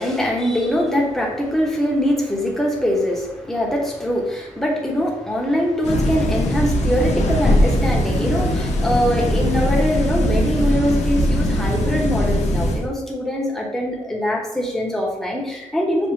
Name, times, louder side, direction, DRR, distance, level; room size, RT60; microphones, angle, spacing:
voice 1, 0.0-16.1, equal, 5° left, -2 dB, 0.9 m, -22 dB
sound 1, 5.8-12.9, equal, 65° left, 0.7 m, -20 dB
6.1 x 2.6 x 3.2 m, 0.99 s
wide cardioid pair, 155°, 13 cm